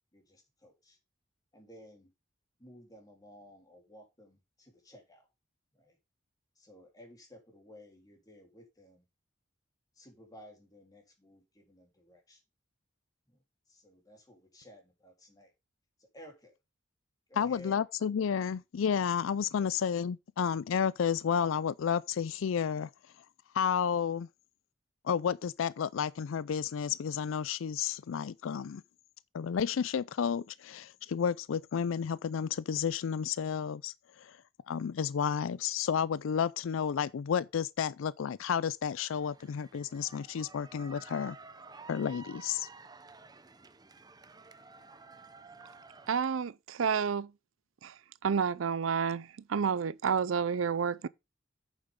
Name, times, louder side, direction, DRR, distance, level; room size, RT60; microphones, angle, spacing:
voice 1, 0.1-1.0 1.5-2.1 2.6-5.3 5.7-6.0 6.6-9.1 9.9-12.4 13.3-15.5 16.0-16.6 17.3-17.8 19.6-19.7, equal, 20° left, 3.5 m, -55 dB
voice 2, 17.4-22.9 23.5-24.3 25.0-28.8 29.3-34.4 34.7-41.4 41.9-42.7, left 7 dB, 80° left, 0.4 m, -31 dB
sound 1, 39.1-46.1, right 3 dB, 20° right, 0.7 m, -52 dB
voice 3, 46.1-47.3 47.8-47.9 48.2-51.1, right 6 dB, 85° right, 0.5 m, -30 dB
8.9 x 7.1 x 3.7 m
head